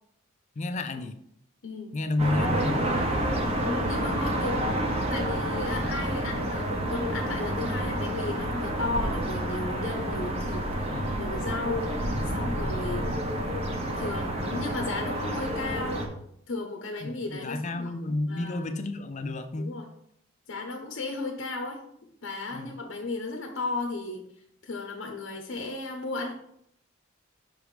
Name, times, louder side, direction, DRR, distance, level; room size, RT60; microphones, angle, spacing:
voice 1, 0.6-1.1 1.9-2.8 5.8-5.9 10.9-11.1 17.0-19.8 22.5-22.7, left 2 dB, 35° left, 9 dB, 0.4 m, -31 dB
voice 2, 1.6-2.0 3.6-4.6 5.1-13.2 14.0-16.0 16.5-17.9 18.3-18.7 19.5-19.9 20.5-21.8 22.2-24.2 24.6-26.3, left 3 dB, 65° left, 3 dB, 0.7 m, -34 dB
sound 1, 2.2-16.1, right 1 dB, 30° right, 0.8 m, -29 dB
6.0 x 3.2 x 5.0 m, 0.70 s
head